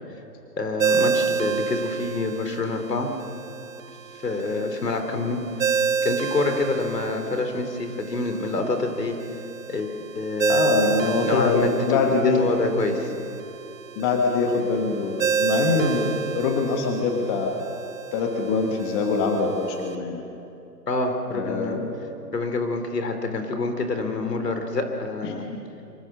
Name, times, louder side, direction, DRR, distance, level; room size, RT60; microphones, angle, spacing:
voice 1, 0.6-3.1 4.2-5.4 6.0-9.2 9.7-10.6 11.2-13.1 20.9-21.8 22.3-25.5, left 3 dB, 70° left, 6 dB, 3.9 m, -27 dB
Ringtone, 0.8-19.9, right 6 dB, 50° right, 0.9 m, -30 dB
voice 2, 10.5-12.5 14.0-17.6 18.1-20.2 21.3-21.9 25.2-25.6, left 4 dB, 15° left, 3 dB, 1.2 m, -24 dB
24.5 x 23.0 x 6.5 m, 2.8 s
hypercardioid pair, 150°, 49 cm